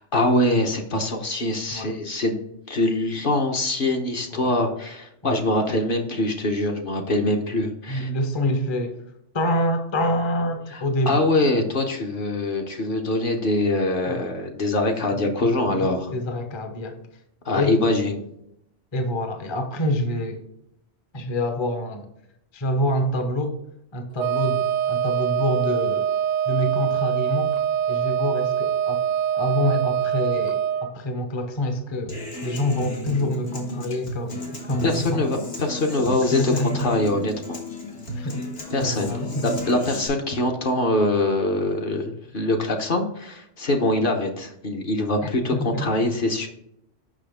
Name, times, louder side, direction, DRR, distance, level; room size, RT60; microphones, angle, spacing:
voice 1, 0.0-8.1 10.7-16.1 17.4-18.3 34.8-37.6 38.2-38.3 38.7-39.1 39.4-46.5, left 2 dB, 50° left, 3 dB, 1.0 m, -24 dB
voice 2, 7.9-9.0 9.3-11.2 14.1-14.3 15.1-17.0 17.5-17.8 18.9-20.4 21.1-22.1 22.5-23.6 23.9-26.1 26.5-27.5 27.9-29.1 29.3-35.2 36.1-36.7 38.1-38.4 38.8-39.5 45.5-45.9, left 1 dB, 30° left, 6 dB, 0.6 m, -26 dB
Wind instrument woodwind instrument, 24.2-30.9, right 9 dB, 85° right, 1.0 m, -24 dB
Human voice / Acoustic guitar, 32.1-40.1, left 1 dB, 65° left, 1.6 m, -33 dB
6.2 x 5.6 x 3.4 m, 0.77 s
omnidirectional pair, 1.3 m